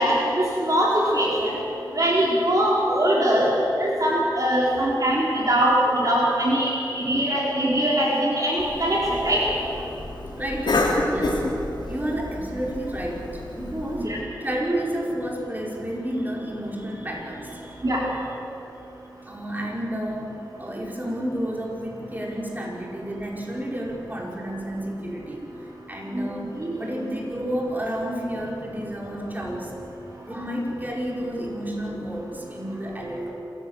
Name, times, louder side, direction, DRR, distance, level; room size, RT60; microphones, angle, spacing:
voice 1, 0.0-1.6 2.0-3.5 3.8-9.4 14.0-14.2 17.8-18.0 26.1-26.3 26.6-26.7, right 1 dB, 45° right, -4 dB, 4.3 m, -22 dB
Cough, 8.6-14.0, left 2 dB, 70° left, 3.3 m, -29 dB
voice 2, 10.4-11.4 11.9-17.8 19.3-20.3 20.6-25.5 25.9-29.7 30.2-33.3, right 1 dB, 20° right, -2 dB, 5.3 m, -31 dB
26.5 x 15.5 x 7.5 m, 3.0 s
cardioid pair, 55°, 8 cm